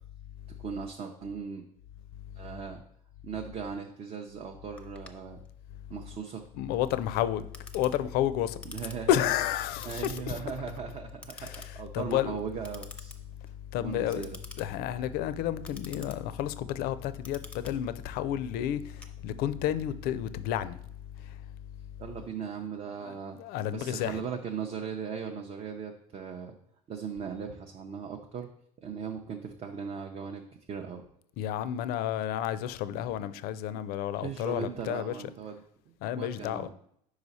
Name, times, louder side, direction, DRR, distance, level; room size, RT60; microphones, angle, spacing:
voice 1, 0.6-1.7 2.4-2.8 3.2-5.4 5.9-6.5 8.6-9.2 9.8-13.1 13.8-14.4 22.0-23.4 23.7-26.6 26.9-28.5 28.8-30.4 30.7-31.0 34.2-36.7, right 6 dB, 35° right, 0.5 m, -38 dB
Clock, 4.8-19.7, left 2 dB, 5° left, 0.6 m, -51 dB
voice 2, 6.6-7.5 7.7-8.6 9.1-10.3 11.4-12.4 13.7-14.3 14.6-18.8 19.2-20.8 23.0-24.2 31.4-35.1 36.0-36.7, left 11 dB, 65° left, 0.4 m, -31 dB
4.9 x 4.9 x 4.1 m
supercardioid pair, 110°, 17 cm